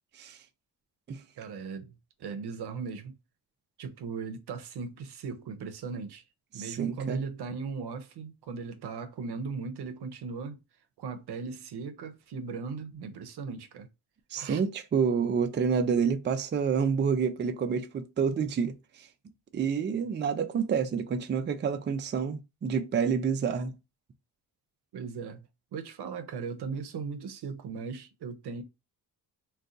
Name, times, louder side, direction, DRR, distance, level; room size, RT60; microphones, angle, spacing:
voice 1, 1.4-1.9 2.2-3.1 3.8-6.2 6.5-10.6 11.0-13.9 14.3-14.6 24.9-25.5 25.7-28.6, right 5 dB, 80° right, 0.7 m, -38 dB
voice 2, 6.5-7.2 14.3-19.1 19.5-23.7, right 6 dB, 30° right, 0.4 m, -28 dB
2.5 x 2.3 x 3.7 m
wide cardioid pair, 115°, 39 cm